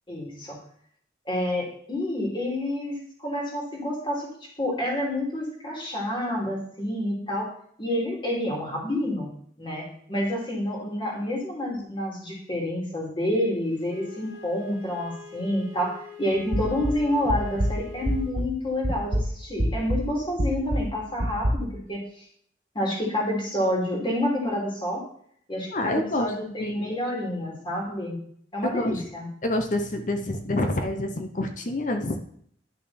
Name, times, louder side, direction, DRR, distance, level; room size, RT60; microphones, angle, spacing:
voice 1, 0.1-0.6 1.2-4.3 4.6-7.5 7.8-9.3 9.6-22.2 22.7-25.0 25.5-28.2 28.5-29.3, left 1 dB, 30° left, -2 dB, 3.1 m, -28 dB
Wind instrument woodwind instrument, 13.8-18.3, left 6 dB, 80° left, 2.4 m, -44 dB
sound 1, 16.5-18.6 18.8-21.5, equal, 75° right, 1.6 m, -27 dB
voice 2, 25.7-26.3 26.6-26.9 28.6-29.0 29.4-32.2, left 1 dB, 45° left, 6 dB, 0.9 m, -27 dB
11.0 x 6.3 x 4.3 m, 0.63 s
head